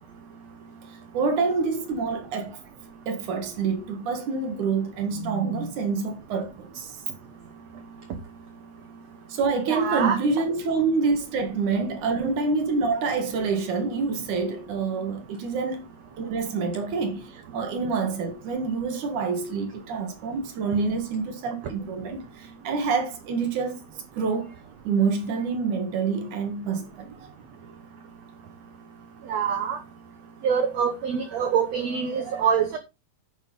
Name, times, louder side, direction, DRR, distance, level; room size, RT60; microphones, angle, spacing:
voice 1, 1.1-2.6 3.1-7.0 9.3-15.8 16.2-23.8 24.2-24.5 24.8-27.1, right 4 dB, 55° right, 3.0 m, -27 dB
voice 2, 9.7-10.2 29.3-29.8 30.4-32.8, right 7 dB, 80° right, 1.5 m, -25 dB
9.3 x 8.7 x 4.0 m
omnidirectional pair, 4.5 m